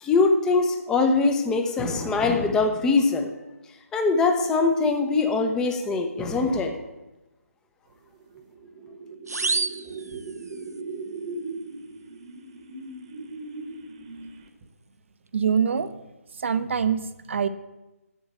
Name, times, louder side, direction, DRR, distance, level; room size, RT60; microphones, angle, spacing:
voice 1, 0.0-3.3 3.9-6.7, left 3 dB, 5° left, 6 dB, 0.7 m, -22 dB
sound 1, 8.2-14.6, right 3 dB, 30° right, 1.2 m, -38 dB
sound 2, 9.3-10.8, right 3 dB, 90° right, 0.5 m, -29 dB
voice 2, 15.3-15.9 16.4-17.0 17.3-17.5, right 7 dB, 50° right, 12 dB, 0.7 m, -23 dB
7.8 x 7.4 x 8.0 m, 1.0 s
figure-of-eight pair, 155°, 8 cm